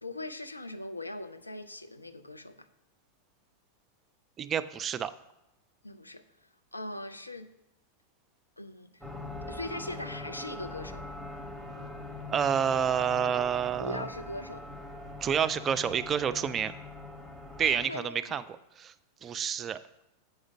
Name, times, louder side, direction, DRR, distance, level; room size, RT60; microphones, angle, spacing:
voice 1, 0.0-2.7 5.8-6.2 6.7-7.5 8.6-9.0 9.5-11.0 13.8-14.7 17.7-18.4, left 1 dB, 85° left, 0.5 m, -40 dB
voice 2, 4.4-5.1 12.3-14.0 15.2-16.7 17.6-18.4 18.8-18.9 19.2-19.8, right 8 dB, 25° right, 0.4 m, -28 dB
sound 1, 9.0-17.9, left 2 dB, 5° left, 1.3 m, -42 dB
7.6 x 5.0 x 6.0 m
figure-of-eight pair, 90°, 0 cm